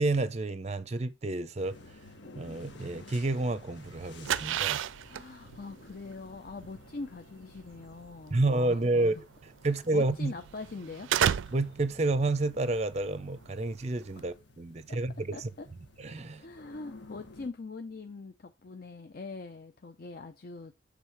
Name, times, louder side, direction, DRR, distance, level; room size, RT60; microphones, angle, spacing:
voice 1, 0.0-1.8 2.4-4.8 8.3-9.2 9.6-10.3 11.5-15.5 16.0-16.5, right 2 dB, 35° right, 0.5 m, -29 dB
sound 1, 1.6-17.5, left 2 dB, 65° left, 1.5 m, -54 dB
sound 2, 3.8-14.2, right 9 dB, 85° right, 0.4 m, -34 dB
voice 2, 5.0-9.2 9.9-11.1 14.2-14.3 14.9-15.0 15.3-15.7 16.4-20.7, left 3 dB, 50° left, 0.5 m, -43 dB
7.3 x 3.6 x 4.5 m
head